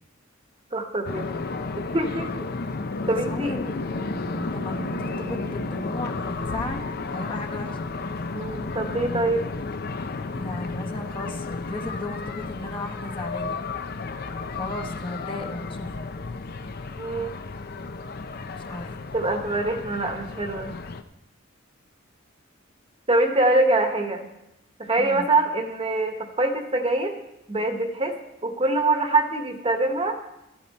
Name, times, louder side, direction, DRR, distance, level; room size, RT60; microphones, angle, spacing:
voice 1, 0.7-1.3 1.9-2.3 3.1-3.5 8.3-9.4 17.0-17.3 19.1-20.7 23.1-24.3 24.8-27.2 27.5-28.1 28.4-30.1, right 2 dB, 30° right, 5 dB, 1.2 m, -24 dB
sound 1, 1.0-21.0, left 3 dB, 50° left, 0.6 m, -33 dB
voice 2, 3.0-3.9 4.5-7.8 10.3-13.6 14.5-16.0 18.6-19.0 25.0-25.3, left 2 dB, 25° left, 2 dB, 1.1 m, -35 dB
sound 2, 3.4-7.1, right 3 dB, 55° right, 1.1 m, -41 dB
13.0 x 12.0 x 4.2 m, 0.89 s
head